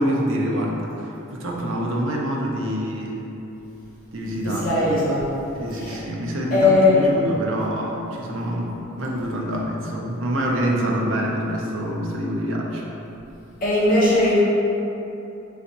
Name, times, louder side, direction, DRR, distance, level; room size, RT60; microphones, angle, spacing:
voice 1, 0.0-3.3 4.1-4.9 5.6-12.8, equal, 60° right, -2 dB, 0.6 m, -26 dB
voice 2, 4.4-5.2 5.7-6.0 6.5-6.9 13.6-14.4, left 2 dB, 40° left, -8 dB, 1.0 m, -19 dB
4.1 x 3.4 x 2.9 m, 2.9 s
head